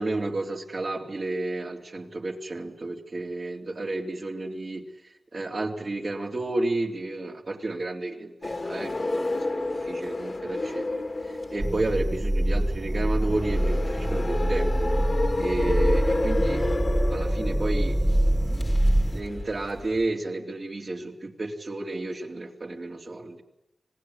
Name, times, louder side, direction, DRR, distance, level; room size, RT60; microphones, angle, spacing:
voice 1, 0.0-4.9 5.3-11.0 11.5-14.9 15.4-16.7 17.1-18.7 19.1-23.4, right 2 dB, 60° right, 2 dB, 3.7 m, -32 dB
sound 1, 8.4-20.0, left 2 dB, 55° left, 2.7 m, -31 dB
sound 2, 11.6-19.2, right 1 dB, 20° right, 1.5 m, -25 dB
26.5 x 20.0 x 9.8 m, 0.90 s
cardioid pair, 40°, 0 cm